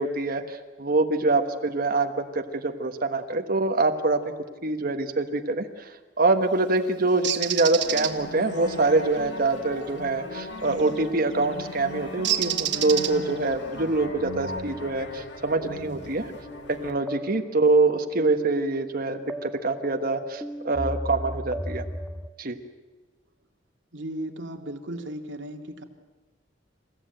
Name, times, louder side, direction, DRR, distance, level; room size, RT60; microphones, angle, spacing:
voice 1, 0.0-4.2 4.6-5.9 6.2-16.2 16.7-21.8 22.4-22.6, right 3 dB, 50° right, 6 dB, 1.3 m, -25 dB
Bird, 7.2-8.1 10.7-11.0 12.2-13.4, right 11 dB, 70° right, 1.5 m, -27 dB
sound 1, 7.8-16.9, left 1 dB, 70° left, 2.3 m, -38 dB
sound 2, 16.5-22.3, equal, ahead, 0.7 m, -37 dB
voice 2, 23.9-25.8, right 1 dB, 85° right, 3 dB, 2.3 m, -36 dB
28.0 x 15.0 x 9.0 m, 1.3 s
head